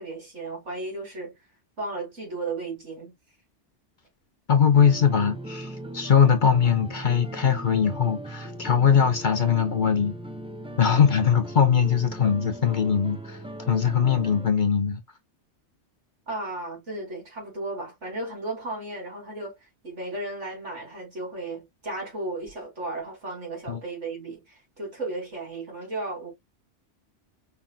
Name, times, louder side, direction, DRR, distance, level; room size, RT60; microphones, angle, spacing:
voice 1, 0.0-1.3 1.8-3.1 16.3-19.5 19.8-26.3, right 2 dB, 80° right, 3.4 m, -34 dB
voice 2, 4.5-10.1 10.8-13.4 13.7-15.0 23.7-23.8, left 7 dB, 45° left, 0.8 m, -21 dB
sound 1, 4.7-14.5, right 1 dB, 5° right, 0.5 m, -39 dB
5.6 x 3.5 x 2.3 m
omnidirectional pair, 1.2 m